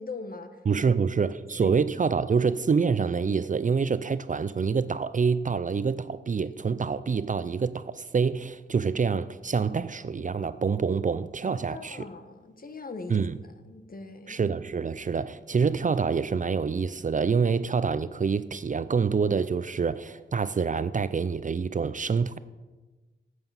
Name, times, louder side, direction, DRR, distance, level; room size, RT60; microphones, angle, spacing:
voice 1, 0.0-0.6 1.2-1.3 1.6-1.8 11.5-13.3 13.7-14.4, left 3 dB, 50° left, 1.0 m, -41 dB
voice 2, 0.7-12.0 13.1-13.4 14.3-22.4, right 5 dB, 40° right, 0.4 m, -26 dB
9.3 x 7.9 x 7.2 m
wide cardioid pair, 115°, 20 cm